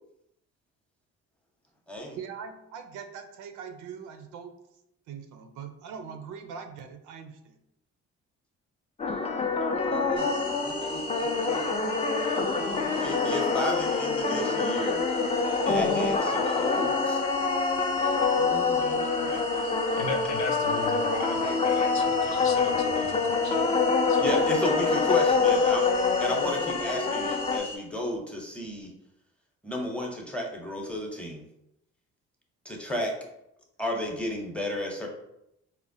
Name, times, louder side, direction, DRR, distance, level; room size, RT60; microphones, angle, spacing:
voice 1, 2.2-4.5 5.1-7.6, right 6 dB, 85° right, 7 dB, 0.5 m, -41 dB
sound 1, 9.0-27.6, left 4 dB, 20° left, 0.3 m, -26 dB
voice 2, 9.7-11.8 13.0-15.0 15.7-17.2 18.4-19.4 24.2-28.9 29.6-31.4 32.6-33.1 33.8-35.1, left 1 dB, 5° left, 0 dB, 0.7 m, -33 dB
sound 2, 10.2-27.8, left 2 dB, 85° left, 1.0 m, -39 dB
voice 3, 20.0-23.6 24.1-24.3, left 4 dB, 70° left, 4 dB, 0.6 m, -36 dB
4.2 x 2.1 x 2.6 m, 0.82 s
cardioid pair, 90°, 30 cm